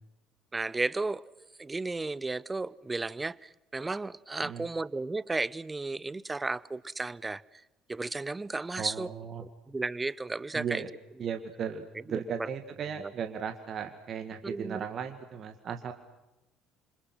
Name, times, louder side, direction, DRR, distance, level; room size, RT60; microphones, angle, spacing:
voice 1, 0.5-7.4 7.9-9.1 9.4-10.8 12.1-12.2 13.0-13.1 14.4-14.9, right 3 dB, 20° right, 0.8 m, -34 dB
voice 2, 8.8-9.4 10.5-10.9 11.2-15.9, right 7 dB, 50° right, 2.0 m, -36 dB
29.0 x 26.0 x 6.3 m
hypercardioid pair, 55°, 0 cm